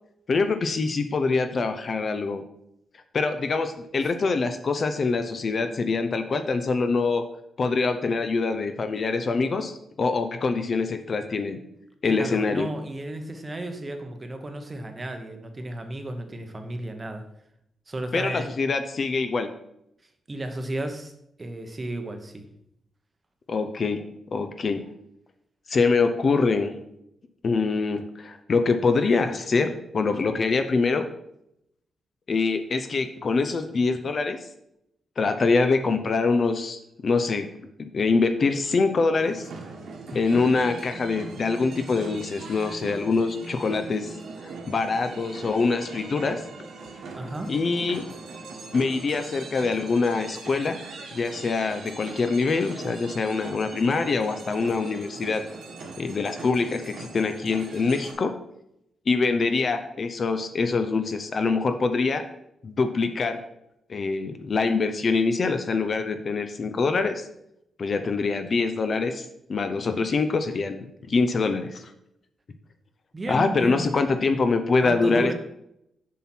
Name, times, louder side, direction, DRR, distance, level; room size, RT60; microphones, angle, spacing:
voice 1, 0.3-2.4 3.1-7.2 7.6-11.6 12.0-12.7 18.1-19.5 23.5-24.0 24.3-24.8 25.7-26.7 27.4-31.1 32.3-34.5 35.2-37.5 37.9-39.5 40.1-44.1 44.7-46.4 47.5-48.0 48.7-50.8 51.1-55.4 56.0-58.3 59.1-62.2 62.6-63.4 63.9-67.3 67.8-71.9 73.3-75.3, left 4 dB, 35° left, 9 dB, 0.5 m, -24 dB
voice 2, 12.0-17.2 17.9-18.5 20.3-21.1 21.4-22.4 47.1-47.5 73.1-73.9 74.8-75.3, right 1 dB, 20° right, 6 dB, 0.9 m, -33 dB
sound 1, 39.1-58.1, right 3 dB, 65° right, 1.6 m, -41 dB
7.2 x 5.8 x 4.3 m, 0.79 s
wide cardioid pair, 165°, 0 cm